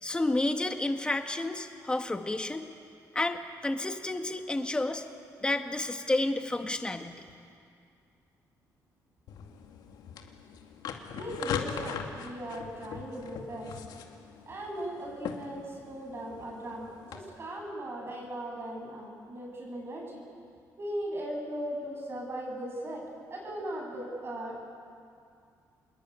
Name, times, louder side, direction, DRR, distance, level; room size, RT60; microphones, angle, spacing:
voice 1, 0.0-2.7 3.1-5.0 5.4-7.2, left 2 dB, 15° left, 6 dB, 1.7 m, -30 dB
sound 1, 9.3-17.2, left 7 dB, 80° left, 2.4 m, -40 dB
voice 2, 11.1-13.7 14.5-20.2 20.8-23.0 23.3-24.7, right 1 dB, 35° right, -1 dB, 7.7 m, -38 dB
26.5 x 21.5 x 9.6 m, 2.4 s
cardioid pair, 125°, 7 cm